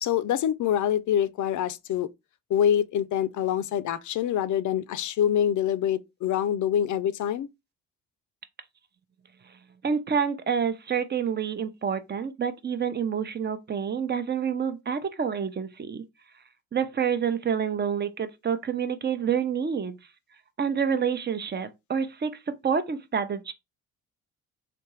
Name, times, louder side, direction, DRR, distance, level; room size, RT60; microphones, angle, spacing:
voice 1, 0.0-2.1 2.5-7.5, left 10 dB, 60° left, 0.5 m, -25 dB
voice 2, 9.8-16.0 16.7-20.0 20.6-23.5, right 7 dB, 30° right, 0.7 m, -28 dB
3.4 x 2.8 x 3.1 m
supercardioid pair, 65°, 35 cm